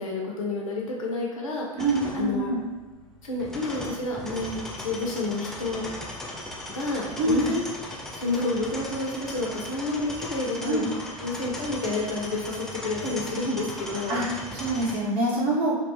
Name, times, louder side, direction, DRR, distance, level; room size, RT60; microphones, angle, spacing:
voice 1, 0.0-1.7 2.1-2.5 3.2-5.9 6.7-7.6 8.1-10.9 11.2-14.2, left 2 dB, 70° left, -2 dB, 0.7 m, -29 dB
sound 1, 1.8-15.0, left 1 dB, 5° left, 0.3 m, -38 dB
voice 2, 1.8-2.6 7.2-7.5 10.6-10.9 14.1-15.7, right 2 dB, 40° right, -5 dB, 0.8 m, -25 dB
2.3 x 2.2 x 3.0 m, 1.2 s
figure-of-eight pair, 85°, 18 cm